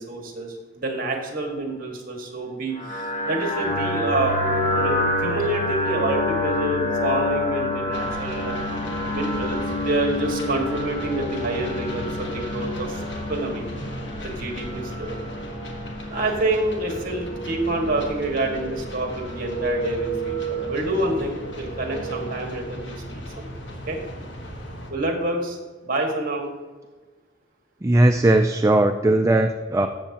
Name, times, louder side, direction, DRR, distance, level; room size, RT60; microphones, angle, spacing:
voice 1, 0.0-4.4 4.7-8.6 9.0-13.0 13.3-13.7 14.2-15.2 16.1-23.5 23.9-24.0 24.9-25.6 25.8-26.5, right 2 dB, 50° right, 2 dB, 1.7 m, -27 dB
sound 1, 2.8-22.5, left 1 dB, 40° left, 1.3 m, -28 dB
sound 2, 7.9-24.9, left 1 dB, 70° left, 1.5 m, -37 dB
voice 2, 27.8-29.9, right 1 dB, 15° right, 6 dB, 0.4 m, -18 dB
14.0 x 7.2 x 2.9 m, 1.3 s
head